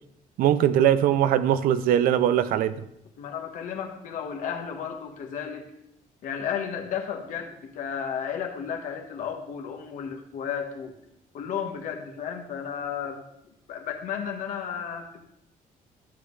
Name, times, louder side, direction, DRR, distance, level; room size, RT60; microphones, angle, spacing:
voice 1, 0.4-2.9, right 10 dB, 80° right, 0.5 m, -21 dB
voice 2, 3.2-5.7 6.2-11.0 11.3-15.3, left 7 dB, 65° left, 1.3 m, -33 dB
12.0 x 7.5 x 3.2 m
cardioid pair, 165°, 14 cm